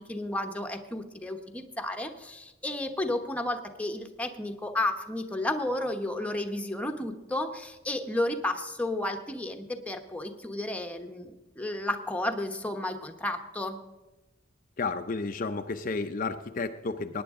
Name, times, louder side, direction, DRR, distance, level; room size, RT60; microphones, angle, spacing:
voice 1, 0.0-13.8, left 1 dB, 5° left, 5 dB, 1.0 m, -32 dB
voice 2, 14.8-17.2, left 3 dB, 45° left, 6 dB, 0.6 m, -32 dB
18.5 x 9.5 x 3.7 m, 1.1 s
head